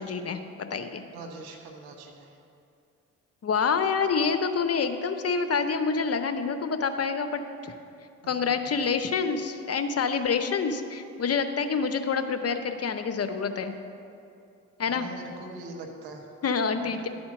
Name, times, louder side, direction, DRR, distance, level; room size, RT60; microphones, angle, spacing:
voice 1, 0.0-1.0 3.4-7.7 8.3-13.7 14.8-15.1 16.4-17.1, left 5 dB, 40° left, 8 dB, 0.8 m, -27 dB
voice 2, 1.1-2.4 14.9-16.3 16.8-17.1, right 2 dB, 80° right, 2 dB, 1.2 m, -42 dB
11.5 x 4.3 x 7.7 m, 2.5 s
hypercardioid pair, 45°, 37 cm